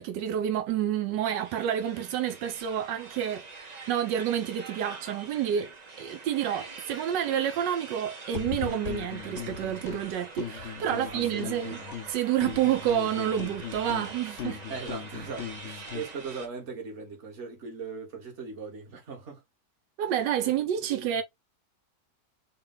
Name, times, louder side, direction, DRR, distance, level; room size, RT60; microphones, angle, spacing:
voice 1, 0.0-11.8 12.1-14.6 15.9-16.0 20.0-21.2, right 10 dB, 85° right, 1.3 m, -29 dB
sound 1, 1.2-16.5, right 4 dB, 70° right, 0.4 m, -44 dB
sound 2, 8.3-10.0 10.4-12.1 12.4-16.1, left 9 dB, 65° left, 0.7 m, -39 dB
voice 2, 10.9-11.9 14.7-19.4 20.0-20.6 20.9-21.2, right 5 dB, 45° right, 1.6 m, -40 dB
4.1 x 2.3 x 3.7 m
omnidirectional pair, 1.8 m